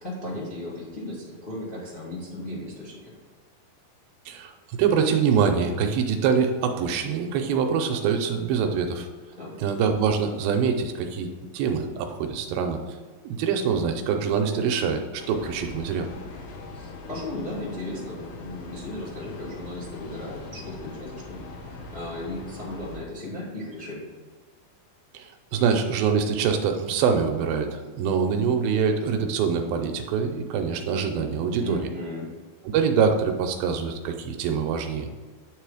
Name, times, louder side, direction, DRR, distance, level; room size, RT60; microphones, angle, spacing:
voice 1, 0.0-3.1 9.4-9.5 16.7-24.1 31.6-32.3, left 1 dB, 25° left, -6 dB, 1.3 m, -36 dB
voice 2, 4.8-9.1 9.6-11.3 11.5-12.8 13.2-16.1 25.1-31.8 32.7-35.1, right 6 dB, 80° right, 5 dB, 2.4 m, -24 dB
Train, 15.2-23.0, left 3 dB, 80° left, 2.9 m, -41 dB
9.3 x 3.8 x 4.8 m, 1.4 s
omnidirectional pair, 4.3 m